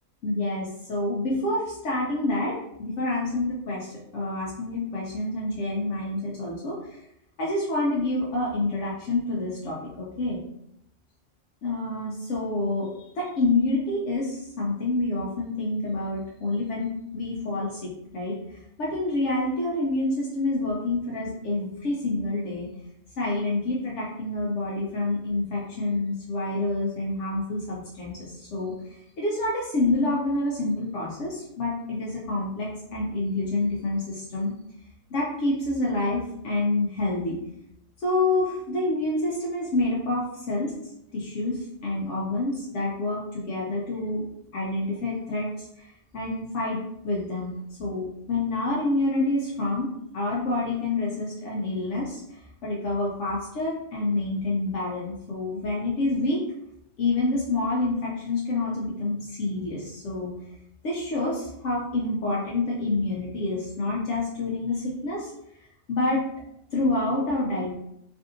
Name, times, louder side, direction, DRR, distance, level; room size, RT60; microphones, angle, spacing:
voice 1, 0.2-7.0 7.4-10.4 11.6-12.9 13.1-22.7 23.2-28.7 29.2-34.5 35.1-37.4 38.0-40.7 41.1-44.2 44.5-47.5 47.8-49.9 50.1-56.4 57.0-60.3 60.8-65.3 65.9-66.2 66.7-67.7, left 2 dB, 70° left, -5 dB, 0.9 m, -28 dB
3.4 x 2.5 x 2.6 m, 0.78 s
omnidirectional pair, 1.3 m